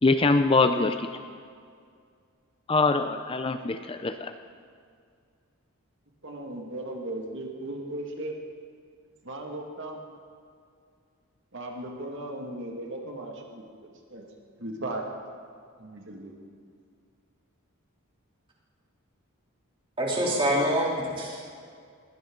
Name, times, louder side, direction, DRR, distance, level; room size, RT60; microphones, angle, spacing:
voice 1, 0.0-1.1 2.7-4.3, left 3 dB, 25° left, 8 dB, 0.5 m, -23 dB
voice 2, 6.2-8.3 9.2-10.0 11.5-14.3 14.6-15.1 15.8-16.3, right 1 dB, 55° right, 1 dB, 2.2 m, -37 dB
voice 3, 20.0-21.5, equal, 25° right, -4 dB, 3.5 m, -26 dB
21.0 x 16.5 x 3.9 m, 2.2 s
head